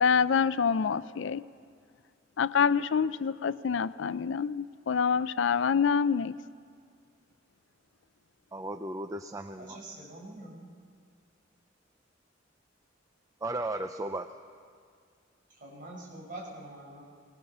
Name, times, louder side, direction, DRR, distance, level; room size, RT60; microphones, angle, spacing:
voice 1, 0.0-1.4 2.4-6.4, left 6 dB, 65° left, 0.4 m, -26 dB
voice 2, 8.5-9.8 13.4-14.3, right 2 dB, 15° right, 0.5 m, -35 dB
voice 3, 9.6-10.7 15.6-17.0, right 1 dB, 45° right, 5.5 m, -44 dB
21.0 x 19.5 x 6.7 m
head